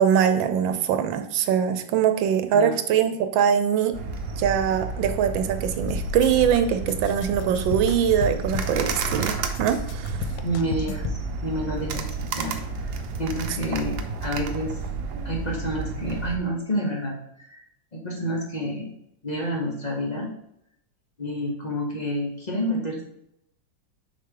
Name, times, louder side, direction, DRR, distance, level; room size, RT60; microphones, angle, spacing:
voice 1, 0.0-3.9 4.4-10.3, right 8 dB, 85° right, 9 dB, 1.4 m, -22 dB
sound 1, 3.9-16.4, right 4 dB, 70° right, 1.1 m, -31 dB
sound 2, 5.9-6.6 6.9-9.3 9.5-11.2, left 7 dB, 90° left, 1.3 m, -33 dB
voice 2, 10.4-11.0 11.4-12.1 12.4-12.6 13.2-14.8 15.2-17.6 17.9-18.9 19.2-20.3 21.2-23.0, equal, 30° left, -1 dB, 0.9 m, -29 dB
6.5 x 4.2 x 3.8 m, 0.78 s
omnidirectional pair, 2.0 m